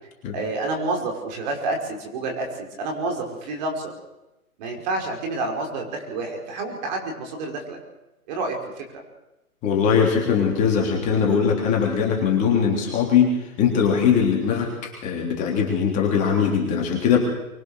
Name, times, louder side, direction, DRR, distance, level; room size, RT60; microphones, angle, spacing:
voice 1, 0.3-3.9 4.6-7.8 8.3-8.8, right 2 dB, 30° right, 2 dB, 5.4 m, -29 dB
voice 2, 9.6-17.2, left 7 dB, 15° left, -1 dB, 3.4 m, -21 dB
25.0 x 21.5 x 6.6 m, 0.95 s
hypercardioid pair, 150°, 44 cm